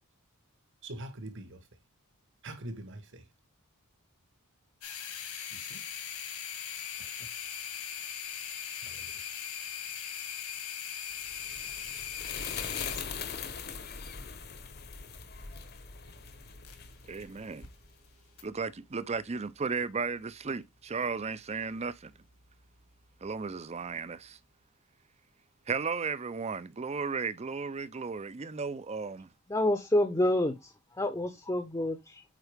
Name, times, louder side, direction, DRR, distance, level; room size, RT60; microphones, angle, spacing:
voice 1, 0.8-1.6 2.4-3.2 5.5-5.8 7.0-7.3 8.8-9.1, right 1 dB, 55° right, 1.4 m, -44 dB
sound 1, 4.8-17.1 17.4-17.7 18.4-18.5, left 8 dB, 75° left, 1.9 m, -40 dB
sound 2, 11.2-17.9, left 6 dB, 45° left, 1.0 m, -41 dB
voice 2, 17.1-17.7 18.4-22.1 23.2-24.4 25.7-29.3, right 5 dB, 30° right, 0.5 m, -35 dB
voice 3, 29.5-32.2, left 1 dB, 15° left, 0.7 m, -28 dB
8.2 x 4.5 x 3.4 m
head